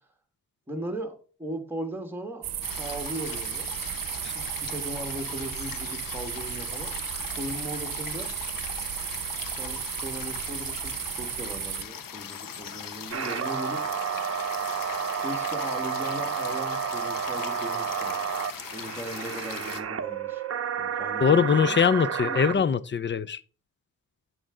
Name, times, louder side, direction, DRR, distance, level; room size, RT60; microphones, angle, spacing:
voice 1, 0.7-2.5 2.8-3.7 4.3-8.3 9.5-13.8 15.2-18.3 18.7-20.4 20.8-21.8 22.2-22.6, right 1 dB, 5° right, 1.7 m, -38 dB
sound 1, 2.4-11.8, right 11 dB, 80° right, 0.7 m, -34 dB
sound 2, 2.6-19.8, left 8 dB, 75° left, 1.0 m, -40 dB
Faxer in pain, 13.1-22.6, right 7 dB, 45° right, 0.7 m, -31 dB
voice 2, 21.2-23.4, left 6 dB, 35° left, 0.5 m, -22 dB
8.7 x 6.2 x 3.7 m
cardioid pair, 75°, 33 cm